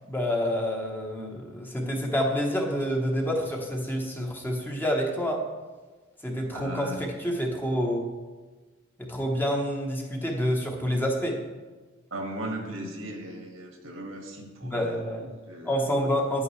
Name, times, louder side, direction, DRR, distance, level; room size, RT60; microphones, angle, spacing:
voice 1, 0.1-5.4 6.2-8.1 9.0-11.4 14.6-15.3 15.6-16.4, equal, 10° left, 0 dB, 1.0 m, -28 dB
voice 2, 6.5-7.0 12.1-15.0 15.5-15.8, right 1 dB, 80° right, 2 dB, 1.8 m, -37 dB
10.5 x 8.4 x 3.2 m, 1.3 s
head